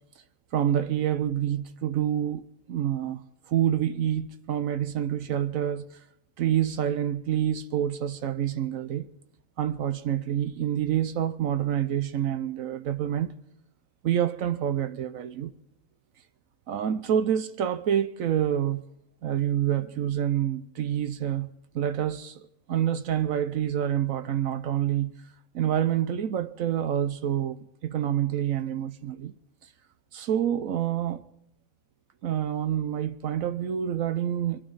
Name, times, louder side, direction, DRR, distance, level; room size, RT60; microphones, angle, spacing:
voice 1, 0.5-3.2 3.5-5.9 6.4-9.1 9.6-13.3 14.0-15.5 16.7-18.8 19.2-25.1 25.5-29.3 30.1-31.3 32.2-34.6, right 10 dB, 75° right, 1.1 m, -27 dB
24.0 x 12.5 x 4.0 m
omnidirectional pair, 1.4 m